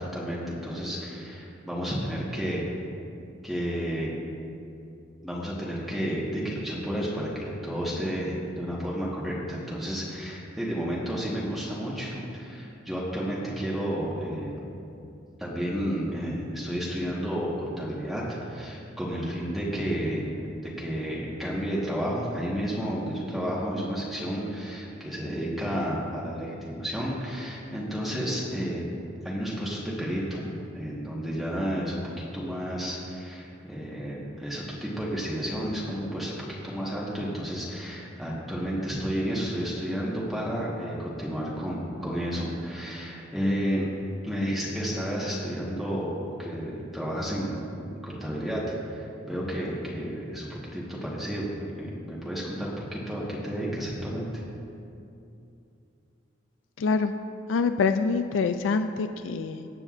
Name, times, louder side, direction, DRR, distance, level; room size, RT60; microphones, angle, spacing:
voice 1, 0.0-2.6 3.4-4.1 5.2-14.5 15.4-18.2 18.5-20.3 20.6-28.8 29.2-30.5 30.7-43.9 44.2-46.1 46.4-47.6 47.9-48.6 48.9-51.5 51.8-54.4, equal, ahead, -6 dB, 1.3 m, -31 dB
voice 2, 56.8-57.1 57.5-59.7, left 4 dB, 85° left, 8 dB, 0.4 m, -25 dB
20.0 x 7.7 x 2.5 m, 2.7 s
head